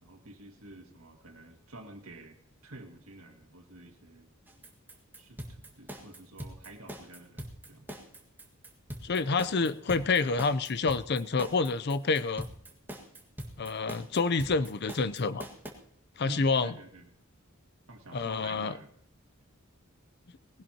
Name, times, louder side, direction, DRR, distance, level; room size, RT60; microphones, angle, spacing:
voice 1, 0.0-2.4 2.6-4.3 5.2-7.9 9.6-9.8 16.2-17.1 17.9-18.9, right 2 dB, 80° right, 4 dB, 2.1 m, -50 dB
sound 1, 4.5-15.7, right 1 dB, 10° right, 1.7 m, -42 dB
voice 2, 9.0-12.5 13.6-15.5 16.2-16.7 18.1-18.7, left 4 dB, 50° left, 13 dB, 0.6 m, -28 dB
19.5 x 16.5 x 2.9 m, 0.72 s
head